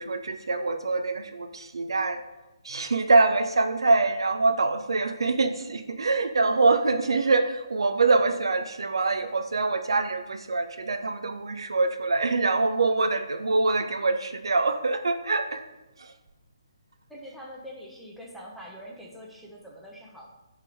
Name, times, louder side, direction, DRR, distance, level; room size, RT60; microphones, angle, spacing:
voice 1, 0.0-2.2 2.6-15.6 16.0-16.1, right 3 dB, 70° right, 8 dB, 0.3 m, -24 dB
voice 2, 17.1-20.3, equal, ahead, -3 dB, 0.6 m, -44 dB
3.7 x 2.9 x 4.6 m, 1.0 s
figure-of-eight pair, 140°, 3 cm